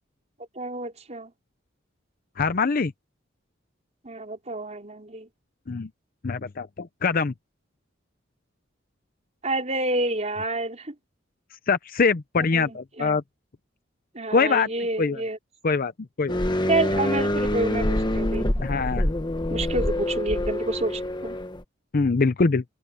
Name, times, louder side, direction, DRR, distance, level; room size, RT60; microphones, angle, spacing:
voice 1, 0.6-1.3 4.0-5.3 9.4-10.9 12.4-13.2 14.1-15.4 16.7-18.5 19.5-21.4, right 2 dB, 35° right, 4.4 m, -29 dB
voice 2, 2.4-2.9 5.7-5.9 6.2-7.3 11.7-13.2 14.3-14.7 15.0-15.2 15.6-15.9 16.2-16.4 18.6-19.1 21.9-22.6, left 4 dB, 50° left, 0.6 m, -23 dB
sound 1, 16.3-21.6, left 1 dB, 25° left, 1.2 m, -26 dB
open air
head